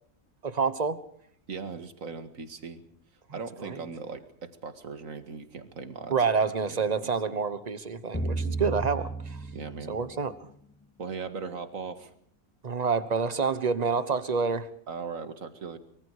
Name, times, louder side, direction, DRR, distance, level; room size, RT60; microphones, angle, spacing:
voice 1, 0.4-1.0 3.6-3.8 6.1-9.4 9.9-10.3 12.6-14.7, right 5 dB, 30° right, 13 dB, 1.2 m, -28 dB
voice 2, 1.5-2.8 3.3-6.2 6.7-7.4 9.5-10.0 11.0-12.1 14.9-15.8, right 5 dB, 70° right, 9 dB, 2.2 m, -39 dB
sound 1, 8.1-10.4, right 2 dB, 15° left, 0.5 m, -33 dB
24.0 x 23.5 x 4.9 m, 0.64 s
omnidirectional pair, 1.5 m